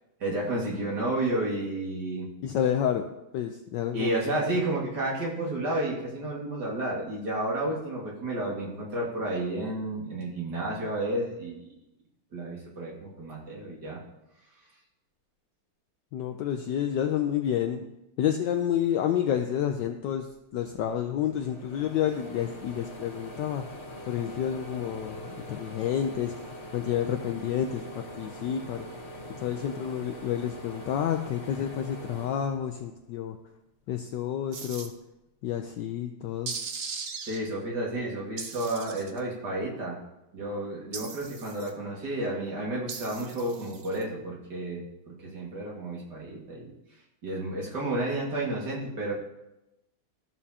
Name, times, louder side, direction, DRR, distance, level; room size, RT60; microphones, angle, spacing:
voice 1, 0.2-2.3 3.9-11.6 12.3-14.0 37.2-40.0 40.3-46.7 47.2-49.1, right 1 dB, 50° right, -3 dB, 2.5 m, -31 dB
voice 2, 2.4-3.1 3.3-4.1 16.1-17.9 18.2-23.6 24.1-28.9 29.4-33.4 33.9-34.9 35.4-36.5, left 9 dB, 75° left, 6 dB, 1.0 m, -29 dB
sound 1, 20.6-33.2 33.7-34.8, equal, 40° left, 1.2 m, -43 dB
sound 2, 34.5-34.9 36.5-37.4 38.4-39.2 40.9-41.7 42.9-44.0, right 5 dB, 65° right, 0.6 m, -38 dB
13.5 x 7.1 x 2.8 m, 0.91 s
omnidirectional pair, 2.3 m